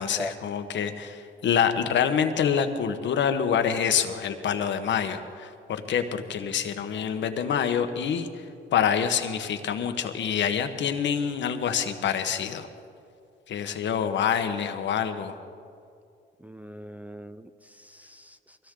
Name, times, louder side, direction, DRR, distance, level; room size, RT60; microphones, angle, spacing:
voice 1, 0.0-8.3 8.7-12.7 13.5-15.3, left 8 dB, 65° left, 8 dB, 1.3 m, -26 dB
voice 2, 16.4-18.6, left 1 dB, 5° right, 8 dB, 0.5 m, -40 dB
22.5 x 16.5 x 3.8 m, 2.5 s
cardioid pair, 90°, 20 cm